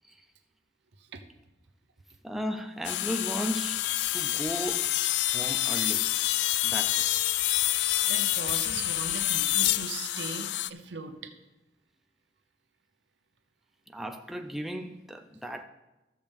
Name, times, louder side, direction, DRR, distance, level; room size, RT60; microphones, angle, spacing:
voice 1, 2.2-3.9 4.1-4.9 5.3-6.1 6.6-7.1 13.9-15.6, equal, ahead, 0.4 m, -35 dB
sound 1, 2.8-10.7, left 14 dB, 80° left, 0.3 m, -27 dB
voice 2, 8.0-11.3, right 4 dB, 85° right, 0.9 m, -39 dB
14.5 x 6.7 x 3.5 m
head